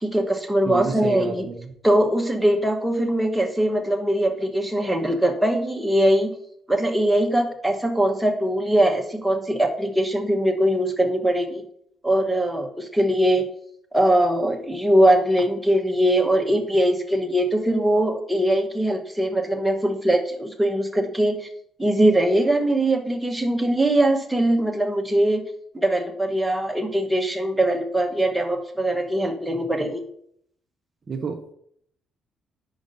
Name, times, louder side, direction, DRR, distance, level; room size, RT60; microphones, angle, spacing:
voice 1, 0.0-1.4 1.8-6.3 6.7-11.6 12.0-13.4 13.9-21.5 21.8-25.4 25.7-30.0, right 1 dB, 5° right, 3 dB, 1.0 m, -21 dB
voice 2, 0.7-1.7 31.1-31.5, right 4 dB, 40° right, 4 dB, 0.7 m, -30 dB
5.1 x 5.1 x 5.3 m, 0.68 s
cardioid pair, 90°, 0 cm